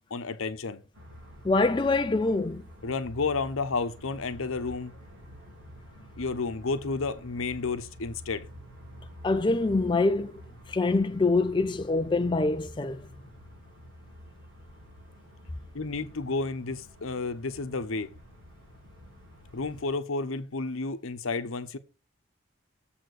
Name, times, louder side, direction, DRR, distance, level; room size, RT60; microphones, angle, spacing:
voice 1, 0.1-0.8 2.8-4.9 6.2-8.5 15.7-18.1 19.5-21.8, left 3 dB, 85° left, 0.9 m, -31 dB
sound 1, 0.9-19.9, equal, 70° right, 4.1 m, -49 dB
voice 2, 1.4-2.6 9.2-10.4 10.7-13.1, left 3 dB, 25° left, 0.4 m, -25 dB
7.5 x 4.4 x 6.3 m
head